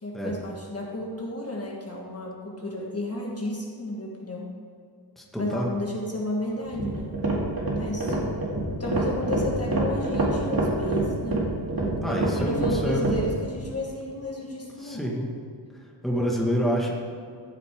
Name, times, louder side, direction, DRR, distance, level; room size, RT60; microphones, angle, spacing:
voice 1, 0.0-4.5 5.4-7.2 7.6-8.2 8.8-11.4 12.0-15.0, left 1 dB, 35° left, -2 dB, 1.6 m, -32 dB
voice 2, 5.2-5.7 12.0-13.0 14.8-15.3 16.0-16.9, equal, ahead, -3 dB, 1.7 m, -27 dB
sound 1, 6.7-13.3, right 2 dB, 55° right, 2.4 m, -26 dB
14.5 x 8.2 x 3.7 m, 2.4 s
wide cardioid pair, 90°, 43 cm